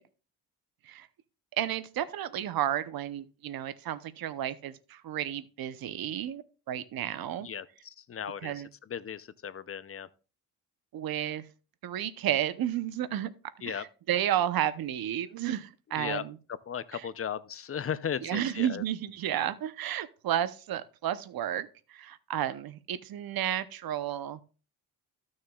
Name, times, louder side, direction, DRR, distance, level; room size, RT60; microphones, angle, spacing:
voice 1, 1.6-7.5 8.4-8.7 10.9-11.4 11.8-13.3 13.7-13.8 14.1-16.4 18.2-24.4, right 11 dB, 70° right, 0.8 m, -32 dB
voice 2, 7.4-10.1 13.6-13.8 15.9-16.2 16.7-18.8, left 8 dB, 35° left, 0.6 m, -36 dB
14.5 x 6.4 x 2.3 m
cardioid pair, 80°, 37 cm